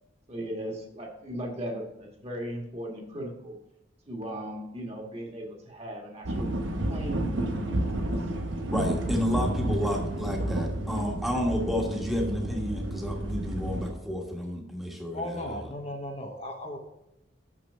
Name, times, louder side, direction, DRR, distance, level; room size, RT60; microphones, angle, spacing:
voice 1, 0.3-3.6 4.1-6.5 6.9-8.1, equal, 30° right, 0 dB, 1.5 m, -37 dB
sound 1, 6.2-13.9, right 1 dB, 90° right, 1.0 m, -31 dB
voice 2, 8.7-15.7, equal, ahead, 0 dB, 1.2 m, -31 dB
voice 3, 15.1-16.8, left 1 dB, 30° left, 2 dB, 0.9 m, -36 dB
6.7 x 6.1 x 5.4 m, 0.84 s
head